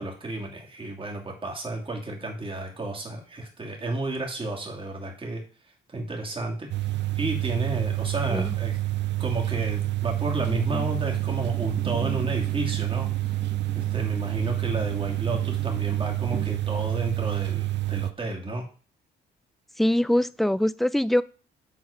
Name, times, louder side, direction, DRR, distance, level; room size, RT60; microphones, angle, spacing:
voice 1, 0.0-5.4 5.9-6.7 7.1-8.8 9.2-13.1 13.7-18.6, right 2 dB, 25° right, 0 dB, 2.5 m, -32 dB
sound 1, 6.7-18.1, right 17 dB, 65° right, 0.5 m, -28 dB
voice 2, 10.5-10.9 19.8-21.2, left 1 dB, ahead, 18 dB, 0.3 m, -24 dB
sound 2, 10.8-16.5, right 5 dB, 45° right, 1.2 m, -39 dB
7.8 x 4.2 x 4.9 m, 0.38 s
cardioid pair, 90°, 20 cm